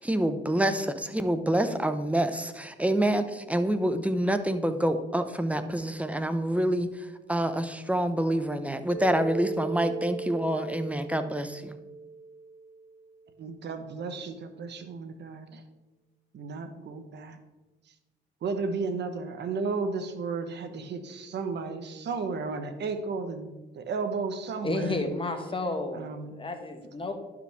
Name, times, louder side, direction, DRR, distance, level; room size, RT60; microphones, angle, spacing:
voice 1, 0.0-6.9 7.3-11.8, right 1 dB, 5° right, 9 dB, 0.6 m, -27 dB
Mallet percussion, 8.9-13.0, right 3 dB, 90° left, 1.0 m, -38 dB
voice 2, 13.4-15.6 16.3-17.4 18.4-25.0 25.9-26.4, right 4 dB, 60° right, 7 dB, 1.0 m, -34 dB
voice 3, 24.6-26.0 26.3-27.1, left 2 dB, 25° left, 6 dB, 1.1 m, -31 dB
11.0 x 5.0 x 3.5 m, 1.2 s
cardioid pair, 90°, 20 cm